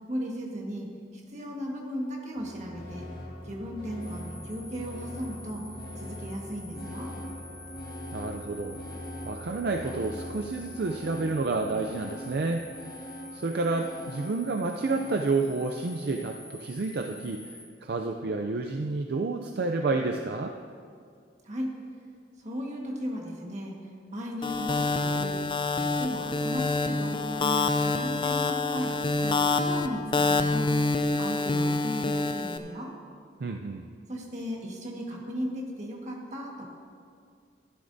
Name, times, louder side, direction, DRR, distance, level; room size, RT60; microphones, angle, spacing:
voice 1, 0.1-3.1 3.4-5.6 6.0-7.1 21.4-21.7 22.4-23.8 24.1-25.4 25.7-30.8 31.2-32.9 34.1-36.6, equal, 40° right, -1 dB, 1.5 m, -36 dB
sound 1, 2.3-15.9, left 1 dB, 55° left, 1.9 m, -42 dB
sound 2, 4.0-17.7, left 1 dB, 5° left, 1.4 m, -48 dB
voice 2, 8.1-8.8 9.2-12.7 13.3-17.5 17.8-20.5 33.4-33.9, right 3 dB, 65° right, 3 dB, 0.5 m, -30 dB
sound 3, 24.4-32.6, left 3 dB, 30° left, 0.4 m, -27 dB
13.0 x 11.5 x 2.7 m, 2.2 s
head